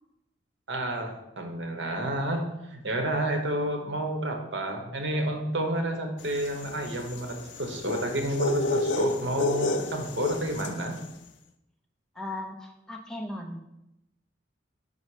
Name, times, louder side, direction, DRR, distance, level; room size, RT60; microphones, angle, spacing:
voice 1, 0.7-11.0, right 1 dB, 70° right, 4 dB, 1.0 m, -30 dB
sound 1, 6.3-10.9, left 2 dB, 70° left, 0.4 m, -30 dB
voice 2, 12.2-13.6, left 1 dB, 5° left, 2 dB, 0.5 m, -37 dB
5.3 x 4.1 x 4.8 m, 0.89 s
head